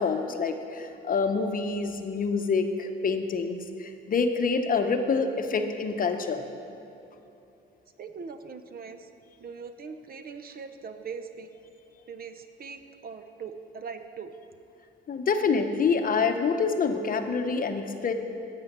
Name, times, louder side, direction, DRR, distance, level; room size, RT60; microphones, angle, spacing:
voice 1, 0.0-6.4 15.1-18.1, left 5 dB, 45° left, 7 dB, 0.8 m, -27 dB
voice 2, 8.0-9.1 9.4-11.5 12.1-14.3, right 5 dB, 50° right, 9 dB, 0.7 m, -41 dB
9.0 x 8.8 x 6.7 m, 2.8 s
cardioid pair, 90°, 20 cm